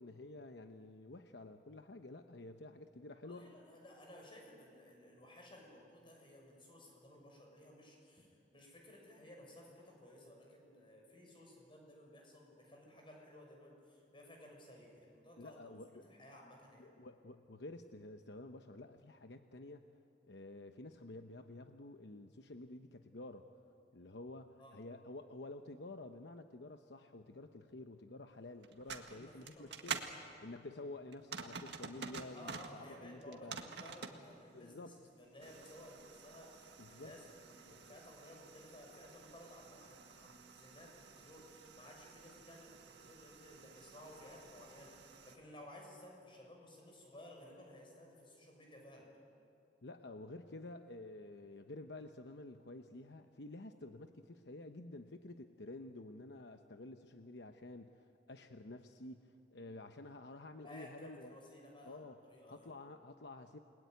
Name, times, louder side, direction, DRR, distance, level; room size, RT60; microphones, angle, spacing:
voice 1, 0.0-3.5 15.4-16.0 16.8-19.9 20.3-23.5 23.9-30.0 30.4-33.6 34.5-35.0 36.8-37.1 49.8-61.4 61.8-62.2 62.5-63.6, left 2 dB, 70° left, 7 dB, 0.9 m, -50 dB
voice 2, 3.2-16.9 24.6-24.8 28.9-30.3 32.3-49.1 60.6-62.7, left 1 dB, 30° left, 0 dB, 6.8 m, -57 dB
sound 1, 28.6-30.1 31.1-32.7 33.2-34.2 35.4-45.4, right 6 dB, 70° right, 1.8 m, -49 dB
29.5 x 21.0 x 9.3 m, 2.6 s
head